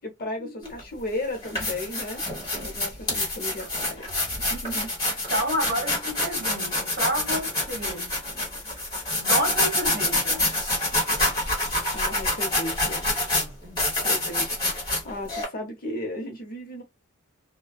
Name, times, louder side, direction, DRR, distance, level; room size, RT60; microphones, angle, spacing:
voice 1, 0.0-2.2 2.6-4.1 4.4-4.9 11.9-13.1 13.9-16.8, left 1 dB, 45° left, 0.7 m, -35 dB
sound 1, 0.6-0.8 1.3-15.4, left 1 dB, 20° left, 1.3 m, -27 dB
voice 2, 5.3-8.1 9.2-10.5 13.4-13.8, equal, 45° right, 1.3 m, -30 dB
2.5 x 2.2 x 2.2 m
head